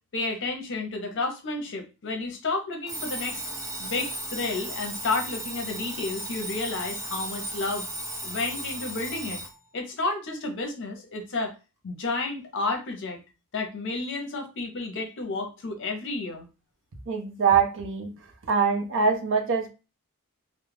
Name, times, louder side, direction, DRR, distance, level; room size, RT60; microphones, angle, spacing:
voice 1, 0.1-3.5 3.8-7.9 8.2-9.4 9.7-11.6 11.8-13.2 13.5-16.5, left 3 dB, 55° left, 0.7 m, -31 dB
Alarm, 2.9-9.6, right 1 dB, 15° right, 0.7 m, -35 dB
voice 2, 17.1-18.1 18.5-19.7, right 5 dB, 60° right, 0.5 m, -23 dB
2.3 x 2.0 x 3.2 m
head